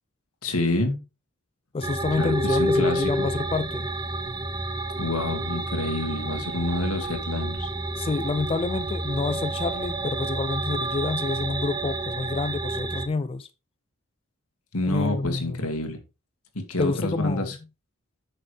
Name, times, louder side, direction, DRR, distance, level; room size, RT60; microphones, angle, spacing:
voice 1, 0.4-1.0 2.2-3.3 5.0-7.7 14.7-16.0 16.5-17.6, left 2 dB, 90° left, 2.1 m, -28 dB
voice 2, 1.7-3.9 8.0-13.5 14.8-15.6 16.8-17.5, left 3 dB, 25° left, 0.3 m, -28 dB
sound 1, 1.8-13.1, right 1 dB, 20° right, 0.8 m, -29 dB
9.0 x 6.4 x 3.3 m
head